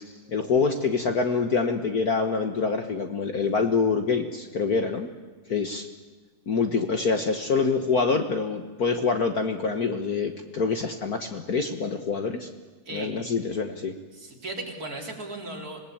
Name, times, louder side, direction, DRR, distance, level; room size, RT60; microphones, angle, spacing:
voice 1, 0.3-5.1 5.5-5.9 6.5-12.5 12.9-13.9, left 4 dB, 45° left, 6 dB, 1.6 m, -25 dB
voice 2, 14.1-15.8, right 2 dB, 40° right, 1 dB, 4.0 m, -36 dB
26.5 x 19.0 x 8.7 m, 1.3 s
omnidirectional pair, 2.4 m